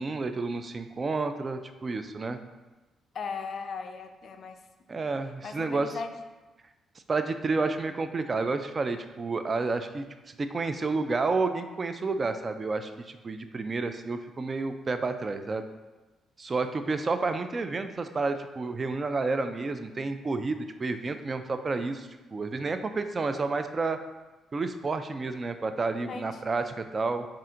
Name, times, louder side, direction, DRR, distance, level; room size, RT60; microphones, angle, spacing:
voice 1, 0.0-2.4 4.9-6.0 7.1-15.7 16.4-24.0 24.5-27.3, right 3 dB, 35° right, 9 dB, 0.3 m, -30 dB
voice 2, 3.1-4.6 5.4-6.1 26.1-26.4, left 5 dB, 55° left, 7 dB, 0.3 m, -37 dB
4.2 x 2.5 x 3.7 m, 1.2 s
cardioid pair, 90°, 0 cm